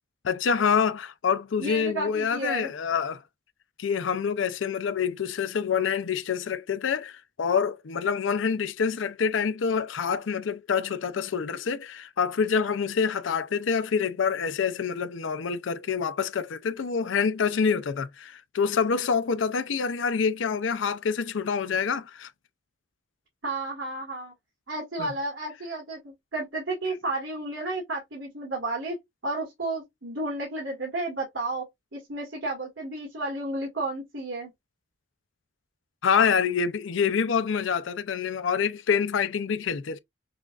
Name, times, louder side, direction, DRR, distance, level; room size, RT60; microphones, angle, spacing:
voice 1, 0.2-3.2 3.8-22.3 25.0-25.1 36.0-40.0, left 6 dB, 85° left, 0.5 m, -26 dB
voice 2, 1.6-2.7 23.4-24.3 24.7-29.0 29.2-31.6 31.9-34.5, right 2 dB, 75° right, 1.8 m, -32 dB
6.0 x 2.4 x 2.4 m
head